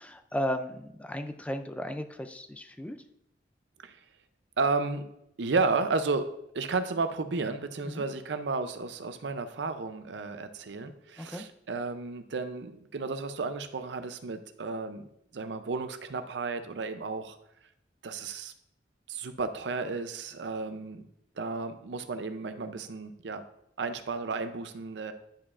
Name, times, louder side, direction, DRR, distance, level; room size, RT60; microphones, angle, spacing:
voice 1, 0.0-3.0 7.8-8.1 11.2-11.4, equal, 10° left, 7 dB, 0.4 m, -35 dB
voice 2, 4.6-5.0 5.4-6.3 6.5-15.0 15.3-17.4 18.0-18.5 19.1-21.0 21.4-23.4 23.8-25.1, right 4 dB, 85° right, 9 dB, 0.6 m, -32 dB
10.5 x 4.7 x 2.5 m, 0.76 s
head